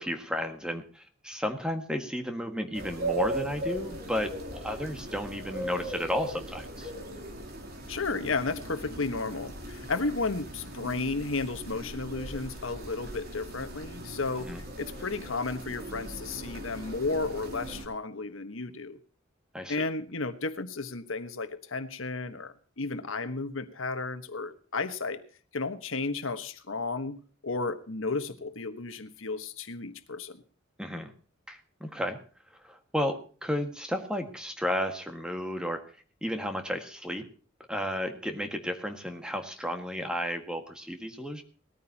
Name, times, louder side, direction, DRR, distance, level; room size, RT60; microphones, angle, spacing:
voice 1, 0.0-6.9 14.4-14.6 19.5-19.8 30.8-31.1 31.5-32.2 32.6-35.8 36.2-37.2 37.7-41.4, equal, 5° right, 5 dB, 1.7 m, -33 dB
sound 1, 2.7-17.8, right 1 dB, 50° right, 3.5 m, -38 dB
voice 2, 7.9-19.0 19.7-25.2 25.5-27.2 27.4-30.4, left 3 dB, 75° left, 10 dB, 1.3 m, -33 dB
20.0 x 14.0 x 2.9 m, 0.41 s
head